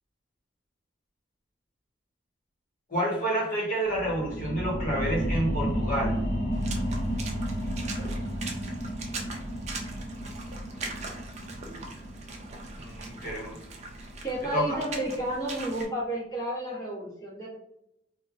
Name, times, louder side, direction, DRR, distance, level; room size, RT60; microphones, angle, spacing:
voice 1, 2.9-6.2 12.8-13.6 14.5-14.8, right 1 dB, 50° left, -4 dB, 0.9 m, -29 dB
sound 1, 3.8-15.0 15.4-15.5, equal, 75° left, 0.7 m, -33 dB
Water / Splash splatter, 6.5-15.9, right 3 dB, 40° right, 0.4 m, -41 dB
voice 2, 14.2-17.5, right 1 dB, 20° left, -7 dB, 0.9 m, -32 dB
3.0 x 2.1 x 2.4 m, 0.80 s
head